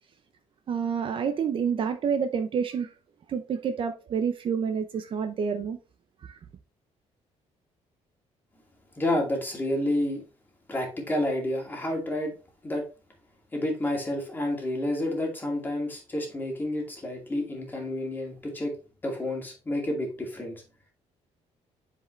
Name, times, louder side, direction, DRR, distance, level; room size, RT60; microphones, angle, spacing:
voice 1, 0.7-2.9 3.3-5.8 6.2-6.4, right 6 dB, 45° right, 0.7 m, -28 dB
voice 2, 9.0-10.2 10.7-12.3 12.6-12.8 13.5-18.7 19.0-20.6, left 1 dB, 15° left, 2.4 m, -29 dB
7.7 x 4.9 x 3.2 m
cardioid pair, 140°, 12 cm